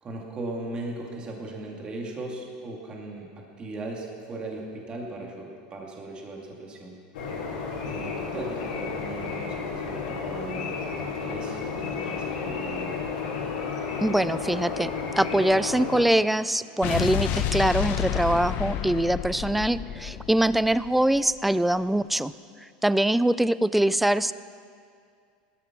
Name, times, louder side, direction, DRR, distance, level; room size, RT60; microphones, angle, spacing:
voice 1, 0.0-7.0 7.8-13.1, right 2 dB, 20° right, -1 dB, 2.5 m, -38 dB
sound 1, 7.1-16.0, left 5 dB, 85° left, 3.8 m, -32 dB
voice 2, 14.0-14.9 15.2-22.3 22.8-24.3, right 1 dB, 5° right, 16 dB, 0.3 m, -23 dB
Explosion, 16.8-21.2, left 10 dB, 45° left, 1.0 m, -29 dB
18.0 x 13.0 x 6.1 m, 2.2 s
supercardioid pair, 145°, 4 cm